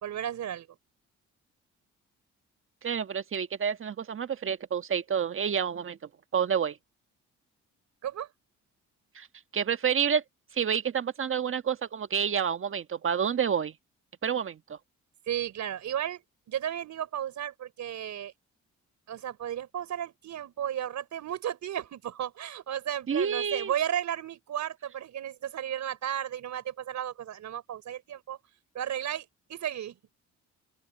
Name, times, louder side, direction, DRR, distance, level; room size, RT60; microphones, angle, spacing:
voice 1, 0.0-0.7 8.0-8.3 15.3-16.2 16.5-18.3 19.1-28.4 28.7-30.0, right 10 dB, 70° right, 4.3 m, -34 dB
voice 2, 2.8-6.0 6.3-6.8 9.1-9.3 9.5-10.2 10.5-13.7 14.2-14.8 23.1-23.7, right 7 dB, 45° right, 1.5 m, -29 dB
open air
cardioid pair, 90°, 30 cm